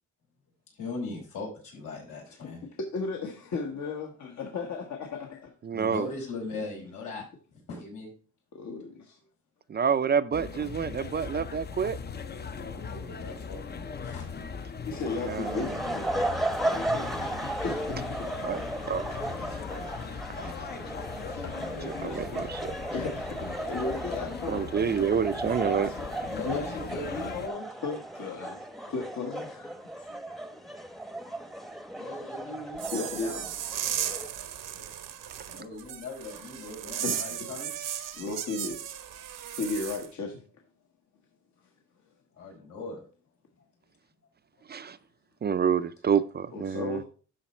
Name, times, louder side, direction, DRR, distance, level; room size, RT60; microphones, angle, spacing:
voice 1, 0.8-2.6 5.7-7.2 7.5-8.1 12.6-14.4 21.4-21.5 26.3-27.7 31.9-33.5 35.5-37.7 42.4-43.0, left 3 dB, 85° left, 4.7 m, -39 dB
voice 2, 2.3-5.5 6.6-6.9 8.5-9.2 14.8-16.1 16.7-18.3 21.2-22.5 22.9-24.9 25.4-26.1 26.5-26.6 26.9-27.3 27.8-30.2 32.9-33.3 34.7-34.9 37.0-37.4 38.1-39.0 39.6-40.4 46.5-47.0, left 4 dB, 65° left, 1.3 m, -36 dB
voice 3, 5.6-6.1 9.7-12.0 15.3-15.8 18.4-19.2 19.5-19.6 20.4-20.7 22.0-22.7 24.5-25.9 44.7-45.0 45.4-47.0, right 7 dB, 35° right, 0.4 m, -28 dB
sound 1, 10.3-27.5, left 5 dB, 35° left, 0.6 m, -39 dB
sound 2, 14.9-34.3, right 1 dB, ahead, 0.8 m, -35 dB
sound 3, 32.8-40.1, right 10 dB, 80° right, 1.0 m, -36 dB
12.0 x 4.1 x 4.2 m
cardioid pair, 125°, 31 cm